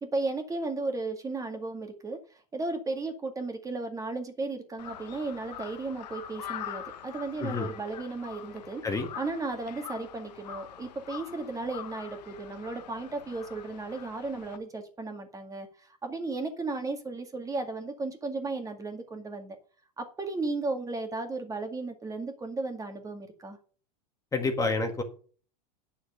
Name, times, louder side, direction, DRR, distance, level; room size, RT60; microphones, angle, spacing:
voice 1, 0.0-2.2 2.5-8.8 9.2-19.6 20.0-23.6, right 3 dB, 15° right, 2.0 m, -35 dB
Crow, 4.8-14.6, left 10 dB, 80° left, 1.4 m, -44 dB
voice 2, 24.3-25.0, left 3 dB, 15° left, 1.7 m, -28 dB
9.6 x 6.6 x 6.7 m
hypercardioid pair, 115°, 21 cm